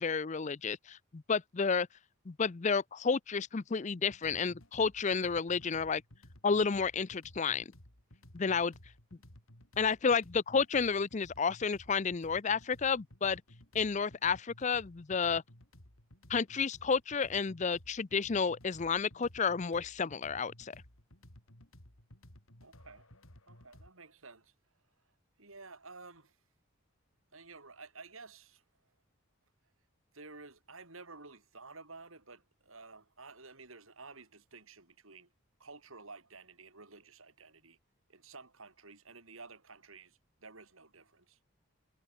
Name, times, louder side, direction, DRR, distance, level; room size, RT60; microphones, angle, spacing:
voice 1, 0.0-1.9 2.3-6.0 6.4-7.6 8.3-8.7 9.8-13.4 13.7-15.4 16.3-20.8, left 5 dB, 35° left, 0.5 m, -31 dB
sound 1, 4.0-23.9, left 1 dB, 75° left, 4.6 m, -57 dB
voice 2, 22.6-23.1 23.5-24.5 25.4-26.3 27.3-28.6 30.1-35.3 35.6-37.8 38.1-41.4, right 3 dB, 75° right, 4.9 m, -52 dB
head